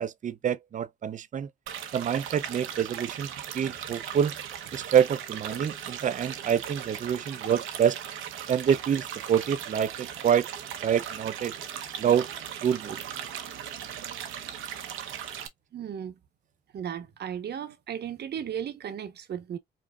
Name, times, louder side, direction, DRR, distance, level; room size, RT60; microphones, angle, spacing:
voice 1, 0.0-1.5 1.9-4.3 4.7-8.0 8.5-10.5 10.8-11.5 12.0-12.3 12.6-13.0, right 8 dB, 40° right, 0.5 m, -26 dB
sound 1, 1.7-15.5, right 9 dB, 85° right, 0.8 m, -38 dB
voice 2, 15.7-16.2 16.7-19.6, right 9 dB, 55° right, 1.0 m, -35 dB
5.2 x 2.7 x 2.3 m
cardioid pair, 90°, 20 cm